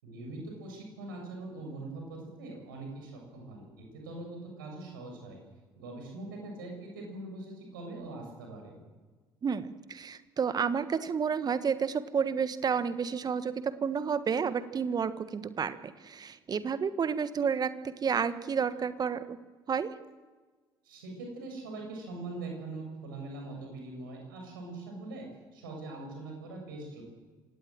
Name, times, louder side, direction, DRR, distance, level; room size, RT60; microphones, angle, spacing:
voice 1, 0.0-5.4 5.8-8.8 20.8-27.0, right 2 dB, 75° right, 2 dB, 7.3 m, -42 dB
voice 2, 9.4-19.4 19.7-19.9, right 6 dB, 35° right, 13 dB, 1.5 m, -31 dB
27.0 x 18.0 x 7.7 m, 1.4 s
figure-of-eight pair, 50°, 11 cm